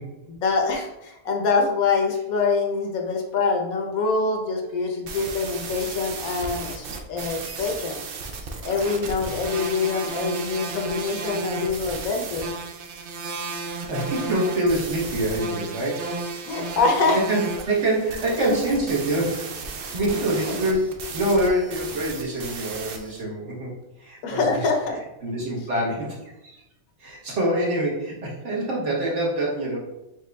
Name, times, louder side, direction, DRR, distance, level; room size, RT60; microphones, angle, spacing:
voice 1, 0.3-8.0 8.6-12.5 16.5-17.2 24.2-25.0, left 4 dB, 75° left, 2 dB, 1.1 m, -25 dB
sound 1, 4.8-4.9 5.1-23.2, right 4 dB, 75° right, 0.5 m, -34 dB
voice 2, 13.8-16.7 17.1-23.7 24.0-24.7 25.2-26.6 27.0-29.8, right 1 dB, 55° right, -4 dB, 1.4 m, -26 dB
5.0 x 3.7 x 2.2 m, 0.92 s
omnidirectional pair, 1.5 m